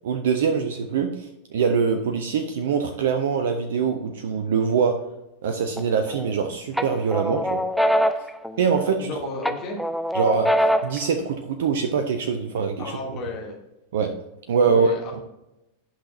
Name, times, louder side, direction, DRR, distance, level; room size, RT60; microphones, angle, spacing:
voice 1, 0.0-5.0 5.4-7.6 8.6-9.1 10.1-12.9 13.9-14.1 14.5-14.9, right 6 dB, 60° right, 6 dB, 0.6 m, -23 dB
sound 1, 5.8-6.4 6.8-9.1 9.4-11.1, equal, ahead, 0.4 m, -24 dB
voice 2, 9.0-9.8 12.8-13.5 14.7-15.2, left 3 dB, 35° left, -1 dB, 2.3 m, -32 dB
11.0 x 5.8 x 2.5 m, 0.92 s
figure-of-eight pair, 90°, 0 cm